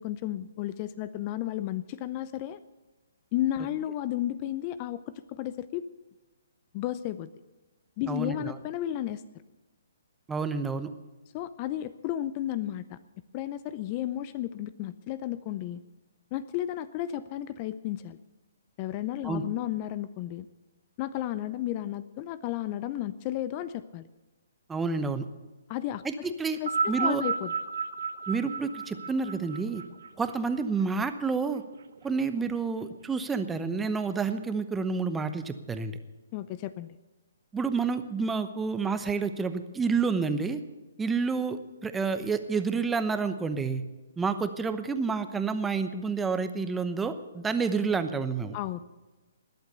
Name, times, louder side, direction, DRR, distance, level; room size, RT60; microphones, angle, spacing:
voice 1, 0.0-2.6 3.3-5.8 6.7-7.3 8.0-9.2 11.3-13.0 13.3-15.8 16.3-18.2 18.8-20.5 21.0-24.1 25.7-27.5 36.3-37.0 48.5-48.8, left 13 dB, 30° left, 15 dB, 0.5 m, -33 dB
voice 2, 8.1-8.6 10.3-10.9 19.2-19.4 24.7-25.2 26.0-26.6 26.9-27.2 28.3-29.8 30.2-31.6 32.0-36.0 37.5-40.6 41.0-43.8 44.2-48.5, right 5 dB, 10° right, 10 dB, 0.9 m, -29 dB
sound 1, 26.5-31.1 32.0-32.1, right 5 dB, 65° right, 1.1 m, -32 dB
20.5 x 8.0 x 6.8 m, 1.2 s
hypercardioid pair, 145°, 0 cm